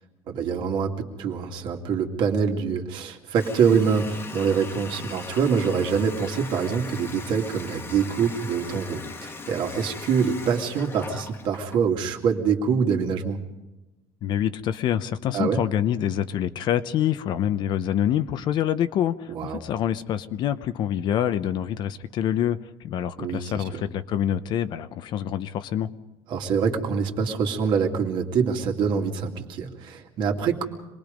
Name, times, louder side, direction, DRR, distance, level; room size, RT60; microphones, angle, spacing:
voice 1, 0.3-13.4 15.3-15.6 19.3-19.6 23.2-23.8 26.3-30.7, right 6 dB, 55° right, 3 dB, 2.5 m, -25 dB
Water tap faucet, 3.3-11.9, left 4 dB, 25° left, 1.6 m, -39 dB
voice 2, 14.2-25.9, left 10 dB, 50° left, 12 dB, 0.9 m, -26 dB
26.5 x 20.5 x 5.2 m, 1.0 s
cardioid pair, 155°, 10 cm